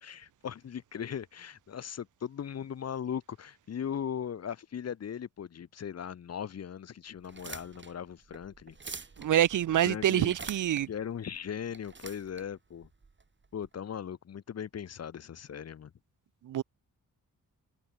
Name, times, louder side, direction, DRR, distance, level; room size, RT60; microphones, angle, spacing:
voice 1, 0.0-8.8 9.7-10.3 10.9-12.9 13.5-15.9, left 8 dB, 50° left, 0.8 m, -38 dB
sound 1, 7.2-13.7, right 4 dB, 35° right, 4.2 m, -47 dB
voice 2, 9.2-10.9 16.5-16.6, right 11 dB, 65° right, 0.6 m, -26 dB
wide cardioid pair, 105°, 33 cm